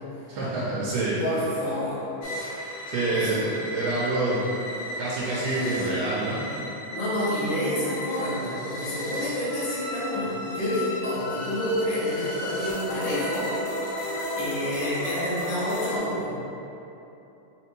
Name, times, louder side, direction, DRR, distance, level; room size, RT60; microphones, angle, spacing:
voice 1, 0.3-1.2 2.9-4.4 5.0-6.4, right 2 dB, 90° right, -7 dB, 2.2 m, -27 dB
voice 2, 1.2-2.1 3.1-3.4 6.9-13.5 13.9-16.3, left 1 dB, 60° left, -9 dB, 1.5 m, -29 dB
sound 1, 2.2-16.0, left 1 dB, 85° left, 2.2 m, -34 dB
5.0 x 3.3 x 3.0 m, 2.9 s
omnidirectional pair, 3.7 m